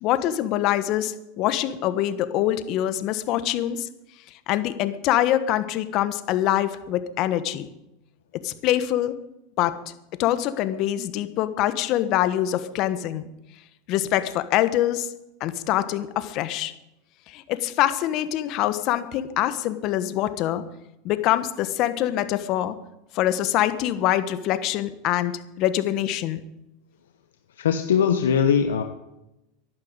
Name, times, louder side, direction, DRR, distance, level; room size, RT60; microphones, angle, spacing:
voice 1, 0.0-3.9 4.5-7.7 8.4-9.1 9.6-9.8 10.2-13.3 13.9-15.1 15.4-16.7 17.3-20.6 21.0-22.8 23.1-26.4, left 13 dB, 50° left, 12 dB, 1.3 m, -24 dB
voice 2, 27.6-28.8, left 7 dB, 85° left, 6 dB, 1.1 m, -20 dB
12.5 x 11.5 x 8.1 m, 0.91 s
hypercardioid pair, 100°, 0 cm